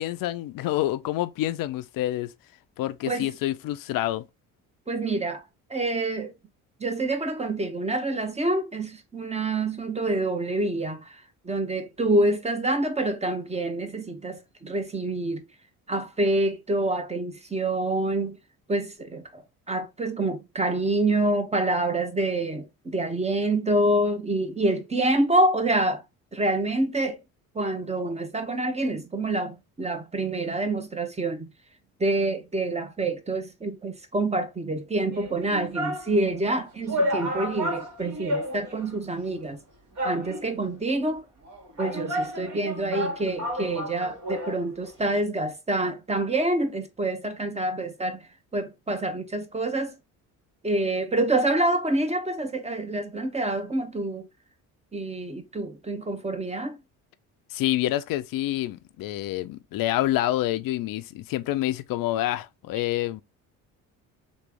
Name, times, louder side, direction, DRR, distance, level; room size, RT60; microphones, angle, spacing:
voice 1, 0.0-2.3 2.8-4.2 57.5-63.2, left 14 dB, 55° left, 0.5 m, -27 dB
voice 2, 4.9-5.4 5.7-6.3 6.8-15.5 15.9-18.4 18.7-19.4 19.7-26.0 26.3-27.2 27.5-31.5 32.0-39.6 40.0-41.2 41.8-48.3 48.5-49.9 50.6-54.3 54.9-56.8, right 2 dB, 15° right, 0.9 m, -27 dB
sound 1, 35.1-36.1 36.5-36.6 36.9-38.9 39.2-39.3 40.0-40.7 41.4-44.6 44.9-45.0, equal, 45° right, 1.5 m, -31 dB
3.1 x 2.6 x 3.4 m
hypercardioid pair, 60°, 41 cm